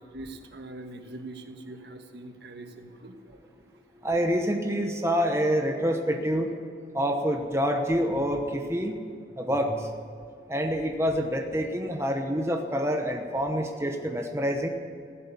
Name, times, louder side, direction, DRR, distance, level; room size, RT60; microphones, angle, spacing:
voice 1, 0.0-3.7, right 2 dB, 65° right, 5 dB, 1.5 m, -43 dB
voice 2, 4.0-6.5 6.9-9.0 9.4-9.9 10.5-14.7, equal, 15° right, 3 dB, 1.0 m, -27 dB
15.0 x 11.5 x 8.4 m, 2.3 s
head